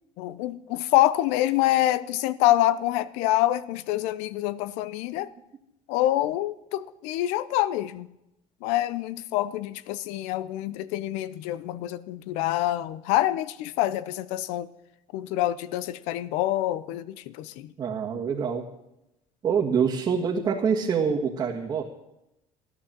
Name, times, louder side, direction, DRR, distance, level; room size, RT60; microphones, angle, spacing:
voice 1, 0.2-5.3 5.9-8.1 8.6-14.7 15.1-17.7, left 14 dB, 90° left, 0.7 m, -26 dB
voice 2, 17.8-18.7 19.4-21.8, right 6 dB, 35° right, 1.7 m, -25 dB
16.0 x 10.0 x 7.5 m
cardioid pair, 145°, 11 cm